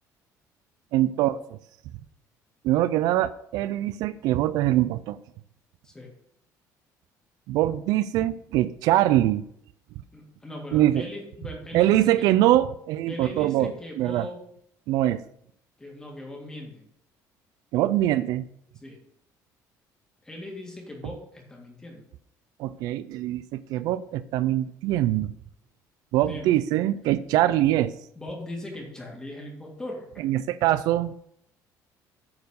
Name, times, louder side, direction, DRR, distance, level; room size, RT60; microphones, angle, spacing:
voice 1, 0.9-1.6 2.6-5.2 7.5-9.5 10.7-11.1 11.7-13.7 14.0-14.3 14.9-15.2 17.7-18.5 22.6-25.3 26.1-27.9 30.2-31.2, right 14 dB, 70° right, 15 dB, 0.4 m, -23 dB
voice 2, 10.1-12.3 13.1-14.4 15.8-16.9 18.8-19.0 20.2-22.1 26.1-26.5 28.2-30.1, left 1 dB, 10° left, -1 dB, 2.0 m, -39 dB
9.4 x 4.6 x 6.5 m, 0.71 s
cardioid pair, 175°, 7 cm